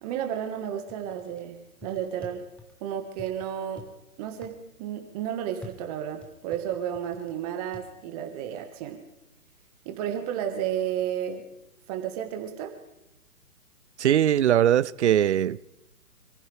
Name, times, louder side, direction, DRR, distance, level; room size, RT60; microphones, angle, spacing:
voice 1, 0.0-2.4 2.8-3.9 4.2-9.0 9.8-11.4 11.9-12.7, right 9 dB, 25° right, 1.5 m, -32 dB
sound 1, 0.9-1.4 1.8-2.7 3.2-3.9 4.4-4.6 5.6-7.3 7.7-7.9, left 2 dB, ahead, 0.8 m, -46 dB
voice 2, 14.0-15.6, right 10 dB, 50° right, 0.6 m, -21 dB
27.0 x 15.0 x 3.3 m
hypercardioid pair, 140°, 45 cm